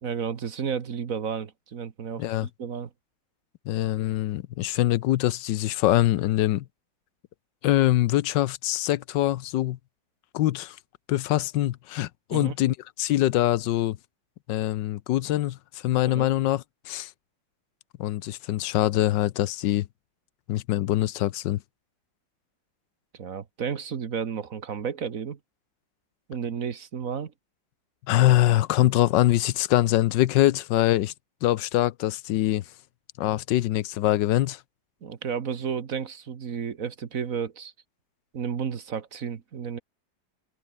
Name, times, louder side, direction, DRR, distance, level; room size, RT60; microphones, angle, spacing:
voice 1, 0.0-2.9 12.3-12.5 15.9-16.3 23.1-25.4 26.3-27.3 35.0-37.7 38.3-39.8, right 7 dB, 50° right, 1.6 m, -32 dB
voice 2, 3.7-6.6 7.6-9.8 10.3-10.8 11.1-14.0 14.5-17.1 18.0-19.9 20.5-21.6 28.1-31.1 31.4-32.6 33.2-34.6, left 14 dB, 75° left, 1.3 m, -24 dB
omnidirectional pair, 2.0 m